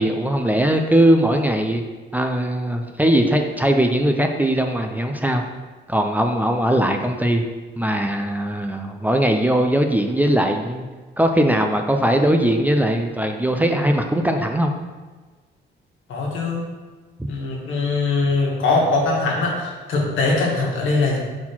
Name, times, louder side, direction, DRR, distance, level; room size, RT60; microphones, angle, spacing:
voice 1, 0.0-1.8 2.1-5.4 5.9-7.4 7.8-10.8 11.2-14.7, right 1 dB, 10° right, 4 dB, 0.5 m, -20 dB
voice 2, 16.1-16.6 17.3-21.2, left 3 dB, 75° left, -2 dB, 1.6 m, -21 dB
4.3 x 4.3 x 5.6 m, 1.3 s
cardioid pair, 90°, 20 cm